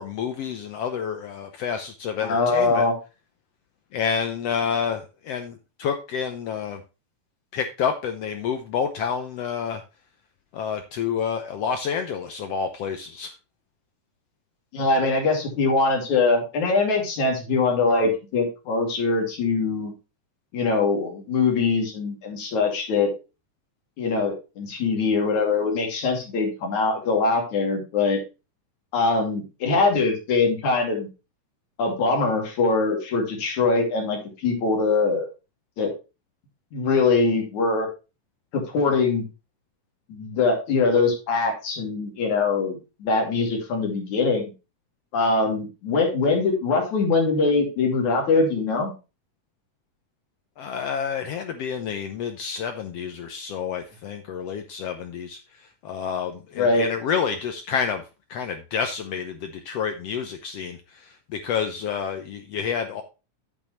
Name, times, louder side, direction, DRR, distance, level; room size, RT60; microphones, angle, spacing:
voice 1, 0.0-2.9 3.9-6.8 7.5-9.8 10.5-13.3 50.6-55.4 55.8-58.0 58.3-63.0, left 7 dB, 80° left, 7 dB, 1.4 m, -29 dB
voice 2, 2.2-3.0 14.7-19.9 20.5-23.1 24.0-28.2 28.9-31.1 31.8-35.3 35.8-35.9 36.7-37.9 38.5-39.3 40.1-44.4 45.1-48.9 56.6-56.9, left 3 dB, 60° left, 1 dB, 3.8 m, -22 dB
8.8 x 8.5 x 3.1 m, 0.29 s
omnidirectional pair, 3.9 m